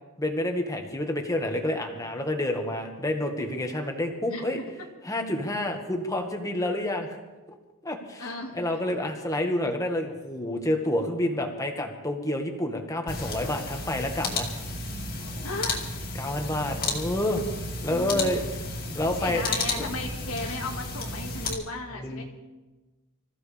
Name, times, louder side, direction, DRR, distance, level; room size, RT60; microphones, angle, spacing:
voice 1, 0.2-4.6 5.0-7.2 7.8-8.3 8.5-14.5 16.2-17.4 17.8-18.4 18.9-19.4 19.7-19.9 21.9-22.2, left 1 dB, 15° left, 3 dB, 1.7 m, -29 dB
voice 2, 8.2-8.6 15.4-15.9 17.9-18.3 19.0-22.2, left 2 dB, 80° left, 0 dB, 1.9 m, -35 dB
sound 1, 13.1-21.5, left 2 dB, 40° left, 2.5 m, -33 dB
26.0 x 15.0 x 3.5 m, 1.2 s
head